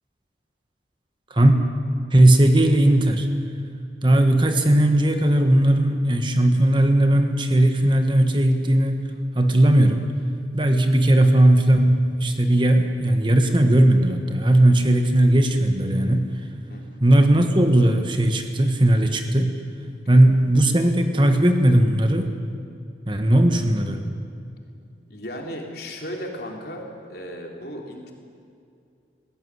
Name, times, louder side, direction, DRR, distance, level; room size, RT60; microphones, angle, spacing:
voice 1, 2.1-3.3 4.0-9.1 9.3-10.1 10.5-16.3 17.0-19.5 20.1-22.3 23.1-24.0, right 1 dB, 25° right, 6 dB, 1.4 m, -17 dB
voice 2, 16.7-17.0 25.1-28.1, equal, 60° left, 1 dB, 3.5 m, -35 dB
20.5 x 16.5 x 9.6 m, 2.4 s
head